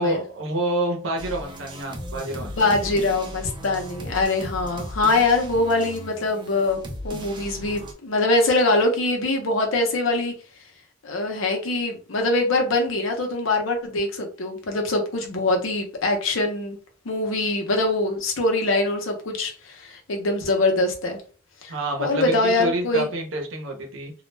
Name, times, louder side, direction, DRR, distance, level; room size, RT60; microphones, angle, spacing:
voice 1, 0.0-3.0 21.7-24.1, right 1 dB, 70° right, 0.7 m, -28 dB
sound 1, 1.2-7.9, equal, 25° right, 0.4 m, -37 dB
voice 2, 2.4-10.3 11.0-16.8 17.0-21.2 21.6-21.7 22.0-23.1, left 2 dB, 80° left, 0.7 m, -23 dB
2.3 x 2.1 x 3.1 m
head